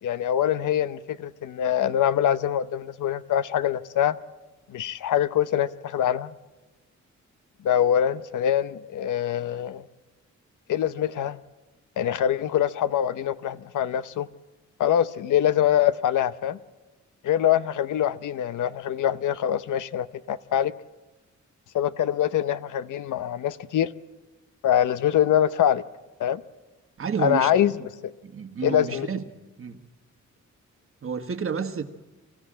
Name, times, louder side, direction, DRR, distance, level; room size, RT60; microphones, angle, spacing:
voice 1, 0.0-4.1 4.7-6.3 7.6-9.8 10.7-11.4 12.0-14.3 14.8-16.6 17.2-20.7 21.7-23.9 24.6-25.8 26.2-26.4 27.2-27.7 28.6-29.1, left 10 dB, 85° left, 0.8 m, -24 dB
voice 2, 27.0-27.5 28.2-29.3 29.6-29.8 31.0-31.8, right 6 dB, 45° right, 1.4 m, -30 dB
25.0 x 15.0 x 8.8 m
cardioid pair, 110°, 30 cm